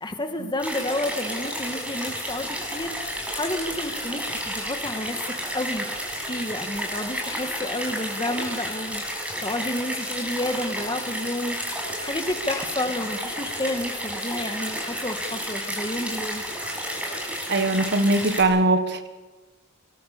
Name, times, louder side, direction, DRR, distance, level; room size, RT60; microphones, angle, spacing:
voice 1, 0.0-5.2 5.5-5.9 6.2-16.4, left 1 dB, 20° left, 6 dB, 2.1 m, -30 dB
sound 1, 0.6-18.4, equal, 5° right, 6.3 m, -31 dB
voice 2, 17.5-19.1, right 2 dB, 55° right, 9 dB, 1.5 m, -21 dB
25.5 x 23.0 x 6.9 m, 1.3 s
head